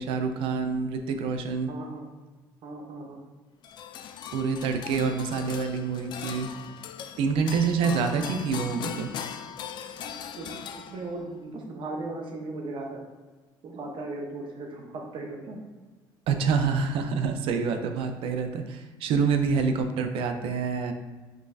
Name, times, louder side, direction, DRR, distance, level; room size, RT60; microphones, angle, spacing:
voice 1, 0.0-1.7 4.3-6.5 7.2-9.1 16.3-20.9, right 5 dB, 75° right, 7 dB, 0.5 m, -27 dB
voice 2, 1.7-2.0 2.6-3.2 9.1-9.2 10.4-10.5 10.7-13.0 13.6-15.6, right 2 dB, 60° right, 1 dB, 1.0 m, -37 dB
sound 1, 3.6-11.3, left 8 dB, 55° left, 0.3 m, -39 dB
5.2 x 3.2 x 2.7 m, 1.3 s
cardioid pair, 105°, 9 cm